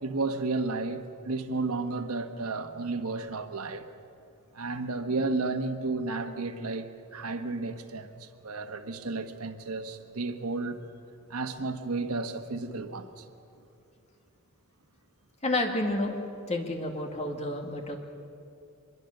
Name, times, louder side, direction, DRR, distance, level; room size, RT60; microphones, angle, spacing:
voice 1, 0.0-3.9 4.5-10.8 11.3-13.3, right 3 dB, 90° right, 7 dB, 1.3 m, -32 dB
voice 2, 15.4-16.2 16.5-18.0, left 2 dB, 30° left, 2 dB, 2.2 m, -30 dB
25.0 x 22.0 x 6.7 m, 2.6 s
head